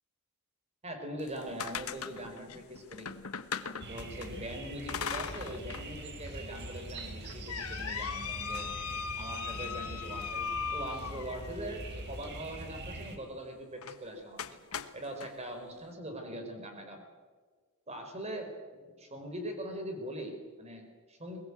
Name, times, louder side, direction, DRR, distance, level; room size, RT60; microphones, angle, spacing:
voice 1, 0.8-3.1 3.6-8.7 9.1-14.4 14.9-17.0 17.9-18.5 19.0-21.4, right 1 dB, 30° right, 4 dB, 4.3 m, -42 dB
sound 1, 1.2-4.3 4.9-5.9 6.3-6.4 7.0-11.6 13.8-14.0 14.4-15.3, left 6 dB, 75° left, 1.2 m, -38 dB
sound 2, 3.8-13.2, right 1 dB, 50° right, 3.1 m, -43 dB
22.0 x 20.5 x 8.5 m, 1.5 s
head